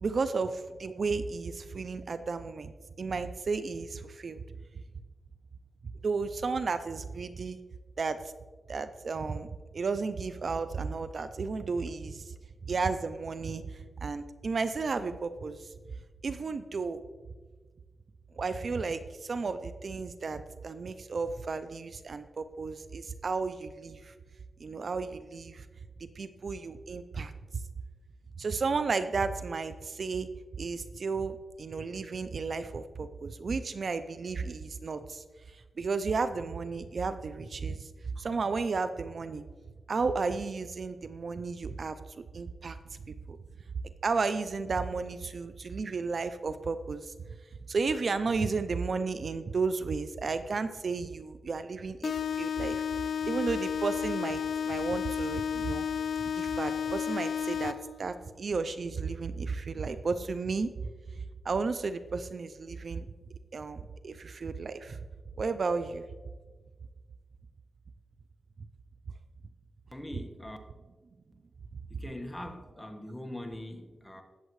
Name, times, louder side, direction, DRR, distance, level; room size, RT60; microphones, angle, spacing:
voice 1, 0.0-2.7 3.0-4.4 6.0-7.6 8.0-8.3 8.7-9.5 9.7-12.3 12.7-15.7 16.2-17.0 18.3-24.1 24.6-25.7 26.0-27.3 28.4-30.3 30.6-37.9 38.2-39.4 39.9-42.0 42.3-43.0 43.3-43.4 44.0-47.1 47.7-52.8 53.2-55.9 56.3-60.7 61.2-63.1 63.3-65.0 65.4-66.1, right 4 dB, 55° right, 11 dB, 0.5 m, -33 dB
sound 1, 52.0-58.0, left 7 dB, 80° left, 0.4 m, -32 dB
voice 2, 69.9-70.6 71.9-74.2, left 1 dB, 10° left, 5 dB, 1.3 m, -42 dB
19.5 x 7.5 x 3.2 m, 1.4 s
cardioid pair, 75°, 0 cm